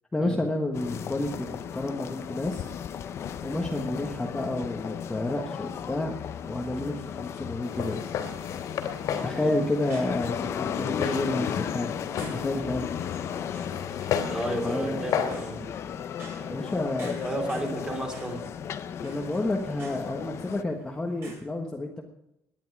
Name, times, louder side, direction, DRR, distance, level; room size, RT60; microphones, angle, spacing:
voice 1, 0.1-2.7 3.4-6.1 6.5-8.0 9.2-12.9 14.6-15.0 16.5-17.2 19.0-22.0, left 2 dB, 10° left, 0 dB, 1.4 m, -30 dB
sound 1, 0.7-20.6, left 8 dB, 45° left, 0.7 m, -35 dB
Walk footsteps, 7.6-15.4, left 7 dB, 70° left, 2.7 m, -35 dB
sound 2, 8.2-21.4, right 3 dB, 40° right, 5.4 m, -51 dB
voice 2, 14.3-15.6 17.2-18.4, right 1 dB, 15° right, 2 dB, 3.1 m, -32 dB
19.0 x 10.5 x 4.8 m, 0.81 s
cardioid pair, 170°, 6 cm